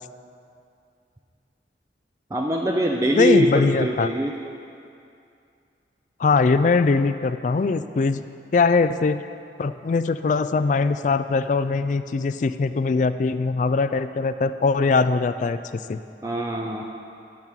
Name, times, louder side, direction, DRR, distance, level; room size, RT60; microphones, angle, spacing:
voice 1, 2.3-4.3 16.2-16.8, right 1 dB, 20° right, 0 dB, 0.5 m, -23 dB
voice 2, 3.2-4.1 6.2-8.2 8.5-9.2 9.6-16.0, left 4 dB, 45° left, 12 dB, 0.3 m, -21 dB
11.0 x 6.1 x 8.2 m, 2.5 s
head